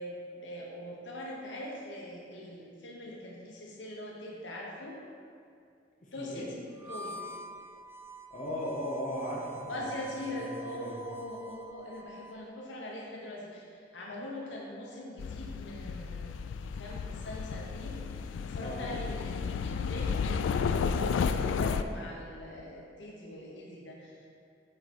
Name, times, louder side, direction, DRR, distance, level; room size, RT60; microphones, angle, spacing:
voice 1, 0.0-5.0 6.1-7.2 9.7-24.3, left 1 dB, 75° left, -2 dB, 1.0 m, -42 dB
Harmonica, 6.8-12.4, right 1 dB, 15° right, 0.3 m, -46 dB
voice 2, 8.3-9.9 10.3-11.0 18.6-18.9, equal, 40° left, -4 dB, 1.0 m, -37 dB
sound 1, 15.2-21.8, left 6 dB, 90° left, 0.3 m, -32 dB
7.7 x 4.6 x 4.2 m, 2.4 s
head